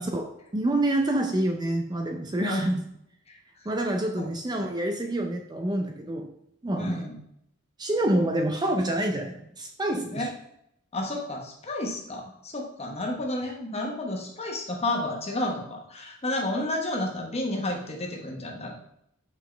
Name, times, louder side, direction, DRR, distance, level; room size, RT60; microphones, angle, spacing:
voice 1, 0.1-2.8 3.7-6.3 6.6-7.0 7.8-10.3, right 1 dB, 20° right, 3 dB, 0.5 m, -27 dB
voice 2, 6.8-7.2 8.2-8.3 10.1-10.3 10.9-18.8, left 1 dB, 30° left, 0 dB, 1.2 m, -31 dB
6.0 x 4.8 x 3.3 m, 0.77 s
head